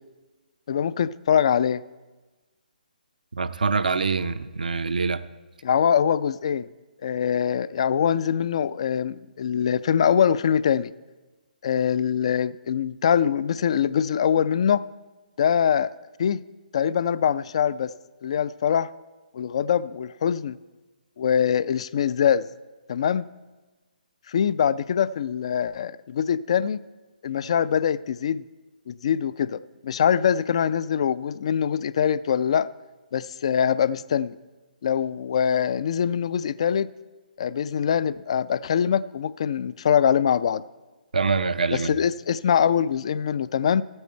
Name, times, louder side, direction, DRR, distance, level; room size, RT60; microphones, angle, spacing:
voice 1, 0.7-1.8 5.6-6.7 7.0-10.9 11.6-14.9 15.4-15.9 16.2-16.4 16.7-17.9 18.2-18.9 19.3-20.6 21.2-22.5 22.9-23.3 24.3-26.8 27.2-28.4 28.9-32.7 33.1-34.4 34.8-36.9 37.4-40.6 41.7-43.8, left 8 dB, 40° left, 18 dB, 0.3 m, -23 dB
voice 2, 3.3-5.2 41.1-41.9, right 4 dB, 60° right, 13 dB, 0.6 m, -25 dB
15.0 x 8.8 x 4.5 m, 1.2 s
figure-of-eight pair, 135°, 5 cm